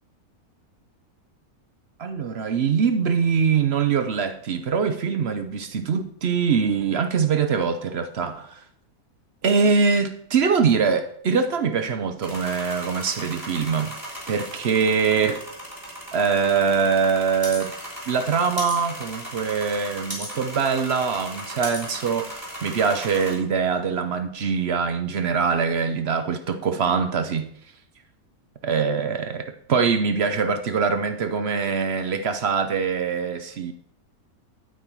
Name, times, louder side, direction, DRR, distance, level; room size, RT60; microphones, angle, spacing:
voice 1, 2.0-8.6 9.4-13.9 14.3-15.4 16.1-17.7 18.1-27.5 28.6-33.7, right 5 dB, 55° right, 0.7 m, -23 dB
sound 1, 12.2-23.4, equal, 15° right, 3.3 m, -37 dB
9.2 x 8.5 x 4.5 m
omnidirectional pair, 1.6 m